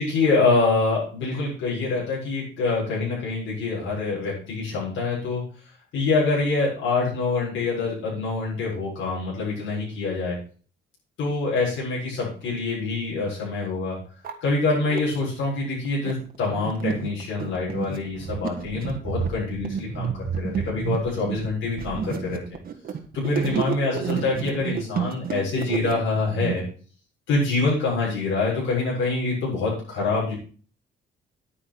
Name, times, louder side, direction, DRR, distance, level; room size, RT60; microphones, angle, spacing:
voice 1, 0.0-5.4 5.9-10.4 11.2-14.0 14.4-22.4 23.1-26.6 27.3-30.3, left 3 dB, 85° left, -5 dB, 7.1 m, -25 dB
sound 1, 12.9-13.0 13.7-13.8 14.1-15.0 15.7-26.5, right 7 dB, 50° right, 1.6 m, -30 dB
9.9 x 9.5 x 4.6 m, 0.41 s
cardioid pair, 130°, 19 cm